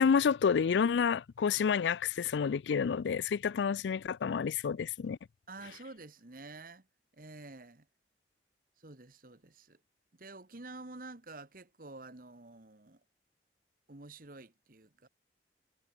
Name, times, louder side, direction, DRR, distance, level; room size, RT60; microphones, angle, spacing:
voice 1, 0.0-5.2, left 6 dB, 90° left, 0.4 m, -29 dB
voice 2, 5.5-6.9 7.1-7.9 8.8-9.8 10.1-13.0 13.9-15.1, right 2 dB, 50° right, 1.5 m, -49 dB
head